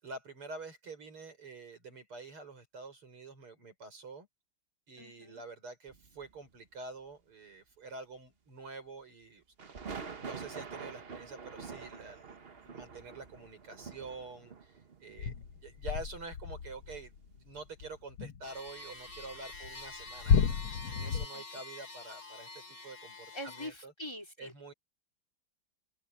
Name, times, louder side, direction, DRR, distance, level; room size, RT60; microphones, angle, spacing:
voice 1, 0.0-4.3 4.9-9.4 10.2-17.1 17.4-20.6 20.9-23.9 24.4-24.7, right 3 dB, 85° right, 6.9 m, -47 dB
voice 2, 5.0-5.4 21.3-21.5 22.8-22.9 23.3-24.5, left 1 dB, 10° left, 4.5 m, -44 dB
sound 1, 5.9-6.5 9.6-17.3 17.7-17.9, right 5 dB, 35° right, 1.1 m, -46 dB
sound 2, 15.2-18.7 19.1-21.3, left 6 dB, 75° left, 2.0 m, -32 dB
sound 3, 18.4-23.7, left 3 dB, 45° left, 6.6 m, -47 dB
open air
omnidirectional pair, 2.4 m